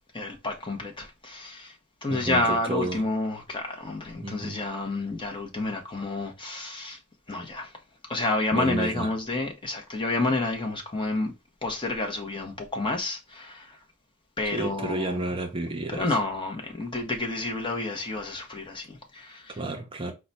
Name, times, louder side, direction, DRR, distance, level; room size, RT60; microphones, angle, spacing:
voice 1, 0.1-1.8 2.0-7.0 7.3-7.7 8.1-11.3 11.6-13.8 14.4-15.2 15.9-19.6, left 2 dB, 25° left, 0.9 m, -30 dB
voice 2, 2.1-3.0 4.2-4.6 8.5-9.1 14.5-16.2 19.5-20.1, right 2 dB, 25° right, 0.5 m, -31 dB
4.7 x 2.2 x 4.0 m
head